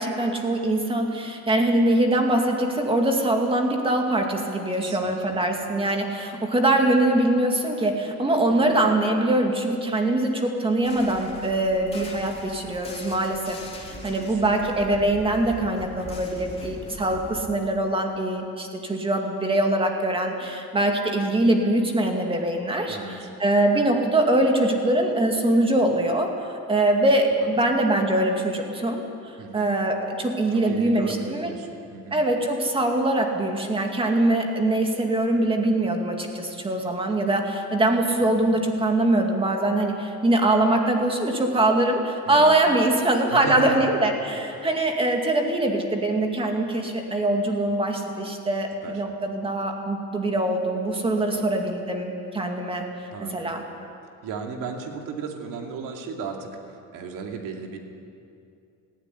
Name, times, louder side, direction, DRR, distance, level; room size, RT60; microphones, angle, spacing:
voice 1, 0.0-23.0 23.4-29.0 29.5-31.5 32.1-52.9 53.3-53.6, right 1 dB, 15° right, 2 dB, 2.3 m, -23 dB
voice 2, 4.7-5.4 8.6-8.7 13.9-14.4 22.9-23.3 29.4-29.7 30.5-32.2 38.2-38.5 42.3-42.5 43.3-43.9 44.6-44.7 48.8-49.0 51.3-51.5 53.1-53.5 54.2-57.8, right 5 dB, 80° right, 2 dB, 2.7 m, -36 dB
sound 1, 10.8-17.5, left 2 dB, 20° left, 3.4 m, -41 dB
17.5 x 16.0 x 10.0 m, 2.5 s
cardioid pair, 155°, 32 cm